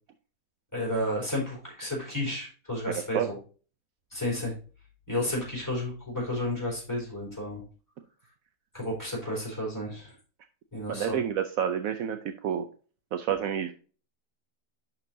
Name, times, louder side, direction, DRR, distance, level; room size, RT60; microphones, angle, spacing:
voice 1, 0.7-3.4 4.1-4.5 5.1-7.6 8.7-10.1 10.7-11.2, left 1 dB, 10° left, -3 dB, 4.1 m, -32 dB
voice 2, 2.9-3.3 10.9-12.7 13.1-13.7, right 9 dB, 70° right, 8 dB, 1.0 m, -29 dB
11.0 x 4.5 x 2.7 m, 0.37 s
omnidirectional pair, 1.6 m